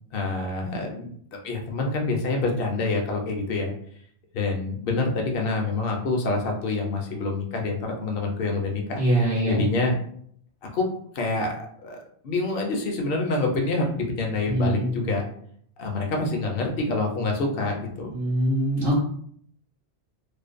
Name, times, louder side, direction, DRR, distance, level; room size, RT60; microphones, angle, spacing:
voice 1, 0.1-3.7 4.3-9.0 9.5-10.0 10.7-10.9 11.1-12.0 12.2-15.3 15.8-18.1, left 3 dB, 65° left, 1 dB, 0.7 m, -26 dB
voice 2, 9.0-9.6 14.5-14.9 18.1-19.0, right 1 dB, 60° right, -6 dB, 0.8 m, -23 dB
2.5 x 2.1 x 2.4 m, 0.63 s
omnidirectional pair, 1.1 m